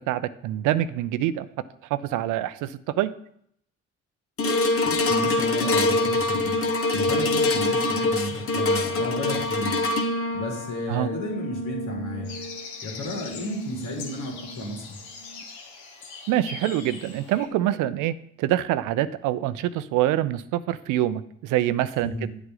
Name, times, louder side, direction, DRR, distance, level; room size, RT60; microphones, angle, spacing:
voice 1, 0.1-1.5 1.9-3.1 10.9-11.1 16.3-22.3, right 13 dB, 75° right, 15 dB, 0.6 m, -25 dB
sound 1, 4.4-14.8 15.3-15.4, left 2 dB, 45° left, 1.1 m, -26 dB
voice 2, 4.8-6.5 6.9-9.8 10.3-12.3 12.8-15.0 22.0-22.3, left 1 dB, 70° left, -1 dB, 3.1 m, -33 dB
sound 2, 12.2-17.5, left 5 dB, 90° left, 1.3 m, -41 dB
8.8 x 8.1 x 3.9 m, 0.68 s
hypercardioid pair, 45°, 31 cm